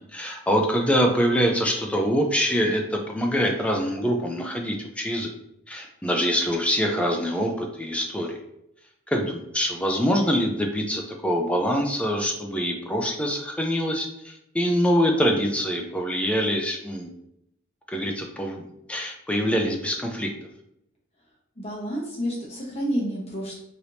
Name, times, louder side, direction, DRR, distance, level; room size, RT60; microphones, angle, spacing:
voice 1, 0.0-5.3 5.7-8.4 9.1-17.1 17.9-18.6 18.9-20.3, equal, 5° left, 2 dB, 0.4 m, -24 dB
voice 2, 21.6-23.6, equal, 30° left, -4 dB, 1.0 m, -29 dB
3.3 x 2.9 x 2.6 m, 0.79 s
head